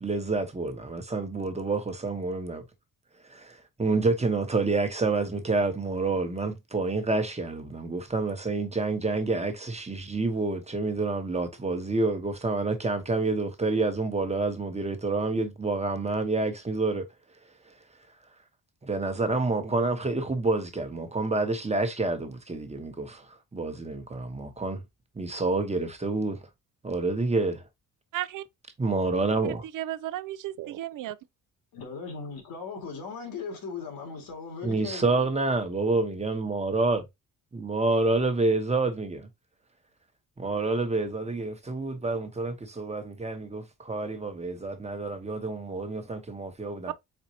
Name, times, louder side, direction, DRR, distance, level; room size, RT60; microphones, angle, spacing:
voice 1, 0.0-2.6 3.3-17.1 17.6-17.7 18.8-24.8 25.1-26.4 26.8-27.6 28.8-29.6 34.6-37.0 37.5-39.3 40.4-46.9, right 3 dB, 20° right, 1.0 m, -28 dB
voice 2, 28.1-28.4 29.7-31.2 46.9-47.0, right 13 dB, 65° right, 0.5 m, -33 dB
voice 3, 31.7-35.3, left 5 dB, 80° left, 2.2 m, -38 dB
4.5 x 4.0 x 2.7 m
cardioid pair, 95°, 34 cm